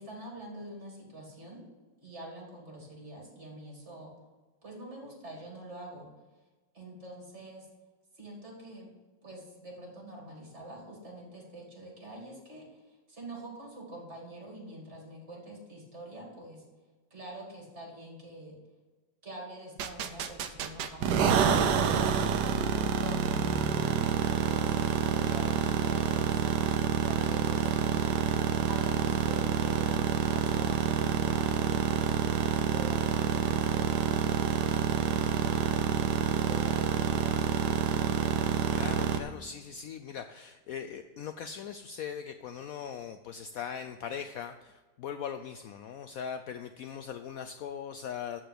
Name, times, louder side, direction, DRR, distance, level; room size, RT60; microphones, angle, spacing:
voice 1, 0.0-1.6 2.0-4.1 4.6-6.1 6.7-7.7 8.1-8.9 9.2-16.6 17.1-18.5 19.2-22.4 23.0-26.7 27.0-28.1 28.7-35.8 36.4-38.2, right 1 dB, 40° right, -1 dB, 2.9 m, -46 dB
sound 1, 19.8-39.2, right 8 dB, 70° right, 1.3 m, -28 dB
voice 2, 38.7-48.4, left 7 dB, 70° left, 9 dB, 0.8 m, -40 dB
13.5 x 4.6 x 7.7 m, 1.3 s
omnidirectional pair, 1.8 m